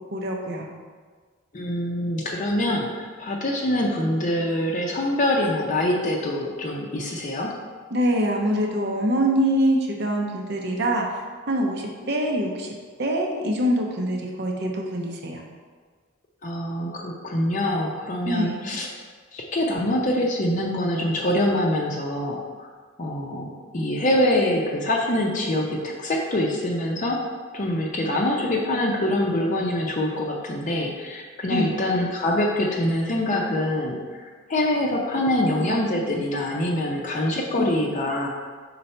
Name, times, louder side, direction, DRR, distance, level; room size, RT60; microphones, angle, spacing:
voice 1, 0.1-0.7 7.9-12.7 13.0-15.4 18.3-18.6 31.5-31.8 37.6-37.7, equal, 55° right, 1 dB, 0.7 m, -24 dB
voice 2, 1.5-7.5 16.4-18.9 19.3-22.4 23.0-27.2 27.5-38.3, left 1 dB, 40° left, -1 dB, 0.6 m, -24 dB
5.5 x 4.0 x 4.4 m, 1.5 s
head